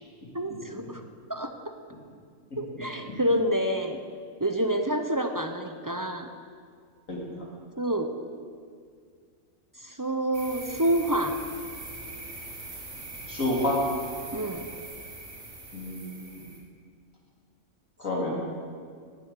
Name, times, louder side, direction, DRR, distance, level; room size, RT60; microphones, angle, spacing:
voice 1, 0.3-1.0 1.3-1.5 2.6-4.0 4.4-6.3 7.8-8.1 9.8-11.4 14.3-14.7, right 1 dB, 20° right, 5 dB, 0.5 m, -28 dB
voice 2, 7.1-7.4 13.3-13.8 15.7-16.5 18.0-18.3, left 1 dB, 75° left, -4 dB, 3.5 m, -29 dB
sound 1, 10.3-16.6, right 2 dB, 60° right, 2.3 m, -42 dB
17.0 x 7.7 x 6.7 m, 2.1 s
omnidirectional pair, 1.4 m